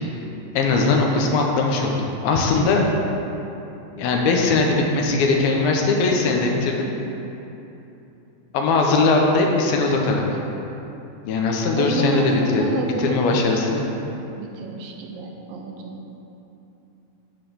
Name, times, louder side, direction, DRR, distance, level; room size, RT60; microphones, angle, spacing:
voice 1, 0.6-2.8 4.0-6.9 8.5-10.4 11.3-12.7 13.0-13.9, left 3 dB, 80° left, 0 dB, 2.7 m, -20 dB
voice 2, 11.8-13.7 14.4-16.2, right 3 dB, 75° right, 1 dB, 2.3 m, -29 dB
10.5 x 4.0 x 6.7 m, 2.9 s
omnidirectional pair, 4.2 m